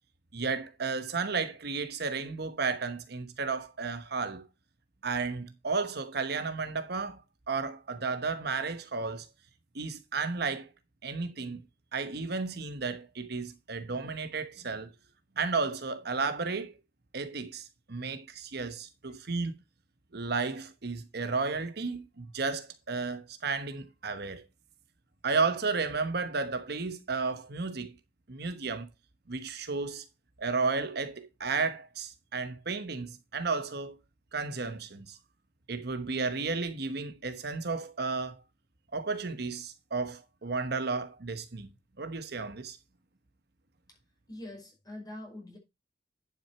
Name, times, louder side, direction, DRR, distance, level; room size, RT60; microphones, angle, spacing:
voice 1, 0.3-4.4 5.0-7.2 7.5-9.3 9.7-10.7 11.0-11.6 11.9-14.9 15.4-16.7 17.1-19.6 20.1-24.4 25.2-27.9 28.3-28.9 29.3-30.0 30.4-34.0 34.3-35.2 35.7-38.4 38.9-41.7 42.0-42.8, right 4 dB, 65° right, 1.1 m, -33 dB
voice 2, 44.3-45.6, left 1 dB, 25° left, 5.3 m, -44 dB
10.5 x 6.4 x 4.4 m
head